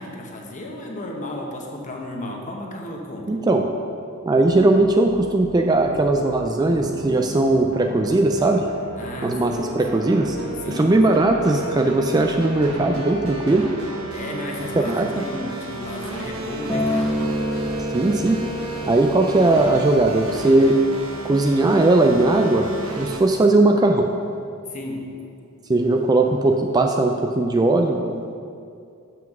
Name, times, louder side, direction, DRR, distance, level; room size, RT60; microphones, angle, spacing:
voice 1, 0.0-3.4 8.9-9.7 10.6-11.0 14.1-17.1 24.7-25.2, left 1 dB, 35° left, 0 dB, 1.1 m, -34 dB
voice 2, 3.3-3.7 4.3-8.7 9.2-10.4 10.7-13.7 14.9-15.2 17.9-18.4 18.9-20.8 21.2-22.7 23.0-24.1 25.7-28.3, right 2 dB, 20° right, 3 dB, 0.3 m, -19 dB
sound 1, 4.3-23.2, right 1 dB, 80° right, 1.2 m, -34 dB
Acoustic guitar, 16.7-21.0 21.8-21.9, equal, 10° left, 1.2 m, -28 dB
7.2 x 5.9 x 6.0 m, 2.4 s
head